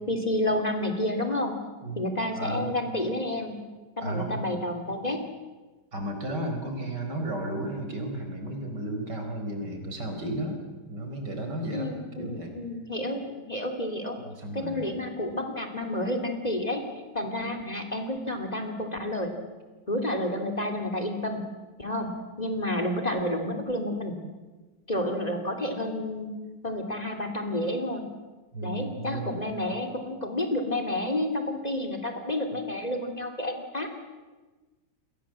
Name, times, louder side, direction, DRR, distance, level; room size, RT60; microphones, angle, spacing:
voice 1, 0.1-1.5 2.0-3.6 4.0-5.2 11.7-14.2 14.5-16.8 17.1-19.3 19.9-21.4 21.8-22.1 22.4-24.1 24.9-26.3 26.6-28.0 28.6-33.9, left 1 dB, 25° left, 4 dB, 3.0 m, -30 dB
voice 2, 2.4-2.8 4.0-4.5 5.9-10.6 10.9-12.5 14.3-14.9 17.4-17.6 28.5-29.4, right 1 dB, 85° right, 4 dB, 5.1 m, -33 dB
29.5 x 22.0 x 7.6 m, 1.2 s
omnidirectional pair, 1.8 m